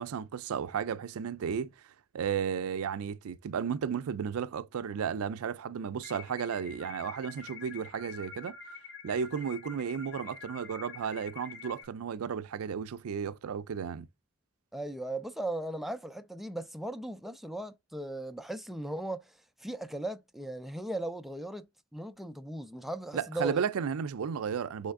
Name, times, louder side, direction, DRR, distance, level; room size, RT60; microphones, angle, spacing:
voice 1, 0.0-1.7 2.1-8.5 9.0-14.1 23.1-24.9, right 7 dB, 80° right, 0.4 m, -33 dB
sound 1, 6.0-11.8, left 5 dB, 55° left, 1.3 m, -47 dB
voice 2, 14.7-21.7 21.9-23.6, right 1 dB, ahead, 0.3 m, -37 dB
4.3 x 3.2 x 3.6 m
head